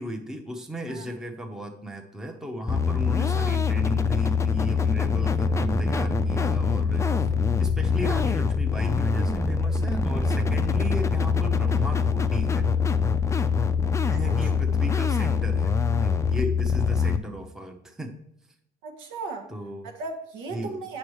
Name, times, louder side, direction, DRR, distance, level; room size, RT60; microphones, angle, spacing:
voice 1, 0.0-7.1 7.6-12.7 14.1-15.7 16.0-18.1 19.5-19.9 20.5-20.8, equal, 5° right, 3 dB, 0.7 m, -36 dB
sound 1, 2.7-17.2, left 5 dB, 15° left, 0.3 m, -24 dB
voice 2, 18.8-19.5 19.8-21.0, right 3 dB, 90° right, 3 dB, 1.3 m, -36 dB
8.4 x 6.2 x 3.1 m, 0.79 s
cardioid pair, 130°, 20 cm